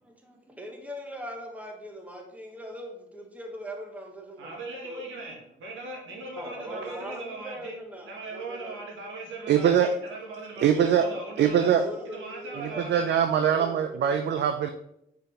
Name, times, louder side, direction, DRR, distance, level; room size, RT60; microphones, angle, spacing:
voice 1, 0.0-4.5 4.8-5.0 6.4-8.8 11.1-11.2 11.7-12.9 13.4-14.2, equal, 5° right, 1 dB, 1.3 m, -41 dB
voice 2, 4.4-7.8 8.1-11.7 12.0-13.3, right 2 dB, 80° right, -1 dB, 1.8 m, -39 dB
voice 3, 9.5-9.9 10.6-11.0 11.4-11.8 12.6-14.7, right 8 dB, 60° right, 7 dB, 0.5 m, -22 dB
5.1 x 4.6 x 4.3 m, 0.79 s
cardioid pair, 90°, 20 cm